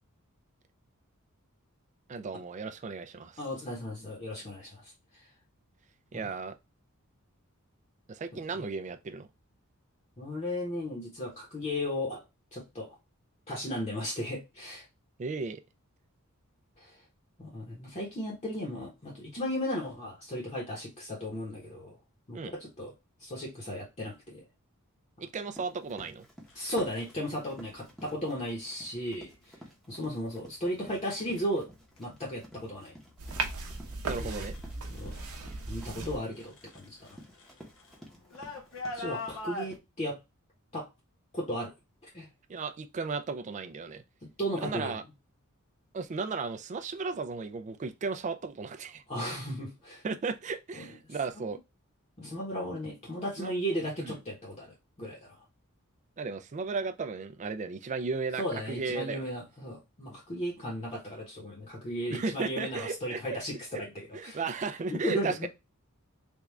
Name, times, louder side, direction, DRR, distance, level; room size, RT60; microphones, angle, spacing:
voice 1, 2.1-3.4 6.1-6.6 8.1-9.3 15.2-15.6 22.3-22.5 25.2-26.3 34.0-34.6 42.5-44.0 44.5-45.0 45.9-49.0 50.0-51.6 53.4-53.5 54.0-54.2 56.2-59.3 62.1-63.2 64.1-65.5, right 4 dB, 35° right, 0.4 m, -35 dB
voice 2, 3.4-4.9 8.3-8.4 10.2-12.2 12.5-13.0 13.5-14.9 16.8-17.0 17.4-22.0 22.3-22.9 23.2-24.5 26.5-29.3 29.9-31.7 32.0-33.0 34.2-34.4 34.9-35.2 35.7-37.2 38.9-40.2 40.7-40.9 41.3-41.7 42.0-42.3 44.2-45.0 49.1-50.0 50.8-50.9 51.4-51.5 52.2-55.4 58.4-64.4 64.9-65.5, equal, 30° left, 1.0 m, -35 dB
Run, 25.5-39.8, equal, ahead, 0.9 m, -53 dB
sound 1, 26.5-27.2 28.3-28.7 29.2-29.7 30.2-30.7 31.1-35.4 35.6-39.7, left 2 dB, 70° left, 0.7 m, -44 dB
sound 2, 33.2-36.2, right 3 dB, 80° right, 0.7 m, -36 dB
3.5 x 2.4 x 3.1 m
head